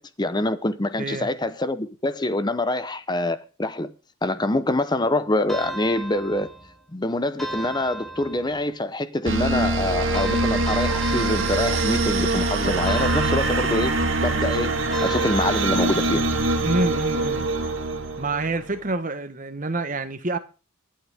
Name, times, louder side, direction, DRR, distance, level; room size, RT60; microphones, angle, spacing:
voice 1, 0.0-3.9 4.2-6.5 6.9-16.2, left 2 dB, 20° left, 0.7 m, -25 dB
voice 2, 1.0-1.3 16.6-17.5 18.2-20.4, right 2 dB, 40° right, 1.2 m, -27 dB
sound 1, 5.5-6.8 7.4-8.7 10.1-12.3 12.9-14.2 14.9-16.2, right 2 dB, ahead, 2.2 m, -35 dB
sound 2, 9.3-18.7, right 2 dB, 65° right, 2.5 m, -23 dB
23.5 x 8.8 x 3.5 m
head